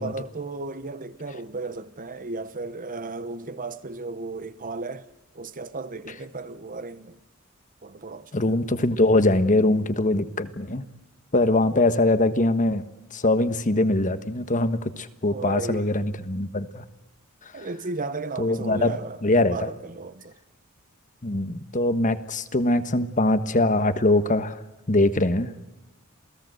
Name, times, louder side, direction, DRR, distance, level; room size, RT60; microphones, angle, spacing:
voice 1, 0.0-5.0 5.3-7.2 7.8-8.6 11.5-11.7 15.3-15.9 17.5-20.4, right 3 dB, 40° right, 1.1 m, -35 dB
voice 2, 8.3-10.8 11.3-12.8 13.1-16.8 18.4-19.7 21.2-24.6 24.9-25.5, left 2 dB, 40° left, 1.4 m, -22 dB
28.0 x 18.0 x 8.0 m
head